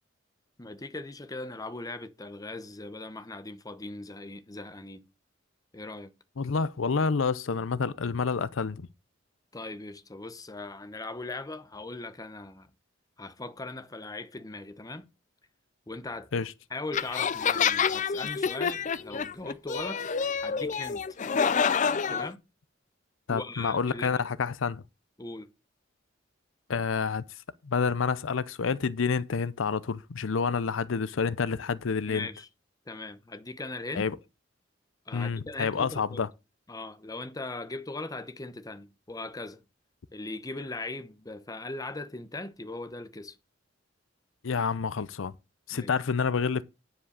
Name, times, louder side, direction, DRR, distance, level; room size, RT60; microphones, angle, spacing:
voice 1, 0.6-5.0 5.7-6.1 9.5-12.7 13.2-15.0 15.9-16.3 16.7-20.0 20.4-21.0 22.1-22.4 23.3-24.2 25.2-25.5 32.1-32.5 32.9-34.1 35.1-36.2 36.7-39.6 40.1-43.4 45.7-45.9, left 2 dB, 20° left, 0.9 m, -39 dB
voice 2, 6.4-8.9 16.3-16.5 23.3-24.8 26.7-27.2 27.7-32.3 34.0-34.2 35.1-36.3 44.4-45.3 45.7-46.6, left 5 dB, 85° left, 0.6 m, -28 dB
sound 1, 16.9-22.3, left 6 dB, 40° left, 0.5 m, -28 dB
9.8 x 5.2 x 6.7 m
head